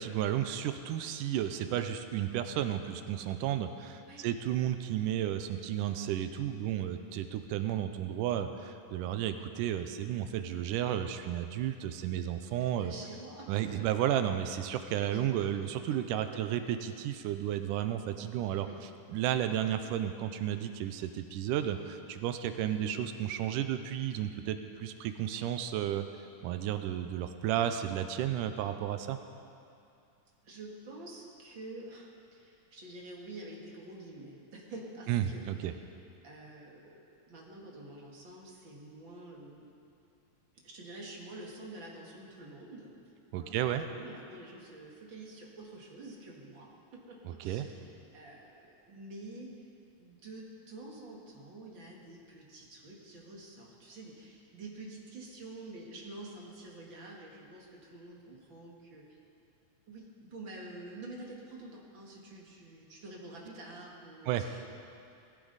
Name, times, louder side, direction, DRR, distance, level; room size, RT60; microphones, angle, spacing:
voice 1, 0.0-12.9 13.5-18.7 19.1-26.1 26.4-29.2 35.1-35.7 43.3-43.8 47.3-47.7 64.3-64.4, right 11 dB, 90° right, 8 dB, 2.2 m, -33 dB
voice 2, 12.6-13.5 13.8-13.9 15.1-15.3 16.1-16.2 18.6-18.8 22.6-22.9 30.4-35.9 36.2-39.7 40.6-42.9 43.3-43.6 43.9-49.6 50.0-59.2 59.9-64.7, right 2 dB, 40° right, -2 dB, 2.2 m, -48 dB
19.5 x 15.0 x 4.0 m, 2.5 s
omnidirectional pair, 3.6 m